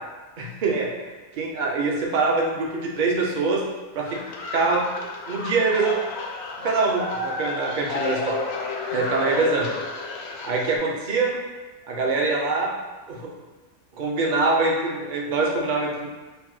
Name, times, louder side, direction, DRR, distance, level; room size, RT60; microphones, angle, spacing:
voice 1, 0.4-3.6 3.9-4.2 4.5-4.8 5.3-5.9 6.6-8.4 8.9-9.7 10.4-11.4 11.8-12.7 13.1-13.3 13.9-16.1, right 3 dB, 50° right, -2 dB, 0.7 m, -24 dB
sound 1, 4.0-10.8, left 3 dB, 65° left, 0.8 m, -32 dB
5.2 x 2.0 x 3.1 m, 1.2 s
omnidirectional pair, 1.3 m